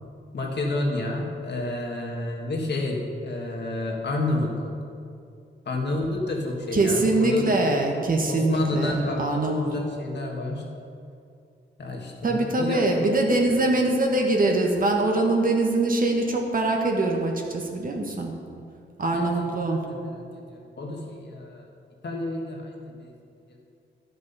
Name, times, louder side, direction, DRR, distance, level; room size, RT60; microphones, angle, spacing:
voice 1, 0.3-4.7 5.7-7.5 8.3-10.6 11.8-12.9 19.1-21.6 22.0-23.1 23.5-23.6, left 2 dB, 60° left, 0 dB, 1.7 m, -30 dB
voice 2, 6.7-9.6 12.2-18.3 19.0-19.8, right 2 dB, 45° right, 1 dB, 1.4 m, -23 dB
12.0 x 6.3 x 5.5 m, 2.5 s
wide cardioid pair, 120°, 20 cm